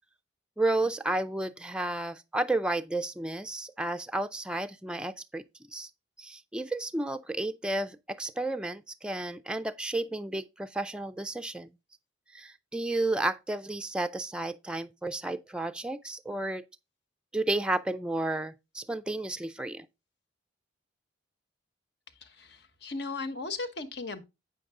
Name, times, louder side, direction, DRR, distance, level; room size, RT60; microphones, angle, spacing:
voice 1, 0.6-5.4 5.7-5.9 6.2-11.7 12.3-16.6 17.3-19.9, right 2 dB, 5° right, 0.4 m, -32 dB
voice 2, 22.2-24.2, left 3 dB, 65° left, 1.2 m, -37 dB
8.6 x 6.5 x 3.6 m
head